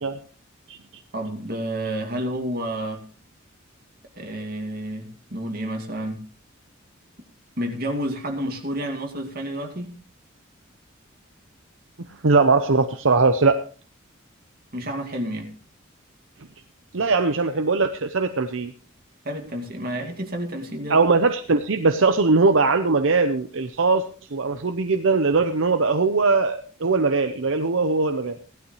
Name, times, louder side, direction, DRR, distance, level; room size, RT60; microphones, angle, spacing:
voice 1, 1.1-3.0 4.2-6.2 7.6-9.9 14.7-15.5 19.2-21.0, right 1 dB, 50° right, 2 dB, 2.4 m, -30 dB
voice 2, 12.2-13.6 16.9-18.7 20.9-24.0 24.3-28.4, right 3 dB, 75° right, 7 dB, 0.8 m, -20 dB
16.5 x 12.0 x 3.2 m, 0.39 s
head